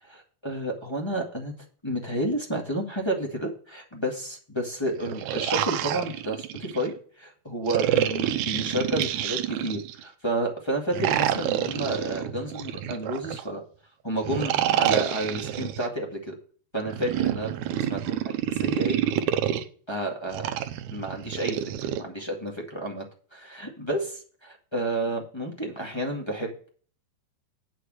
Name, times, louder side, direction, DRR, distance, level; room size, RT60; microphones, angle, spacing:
voice 1, 0.0-1.5 1.8-13.6 14.0-16.3 16.7-19.0 19.9-23.0 23.3-26.7, right 1 dB, 10° left, 0 dB, 1.3 m, -31 dB
sound 1, 4.9-6.9 7.7-10.0 10.9-13.4 14.2-15.9 16.8-19.6 20.3-22.0, right 12 dB, 75° right, 2.1 m, -28 dB
8.6 x 6.6 x 6.3 m, 0.43 s
omnidirectional pair, 3.7 m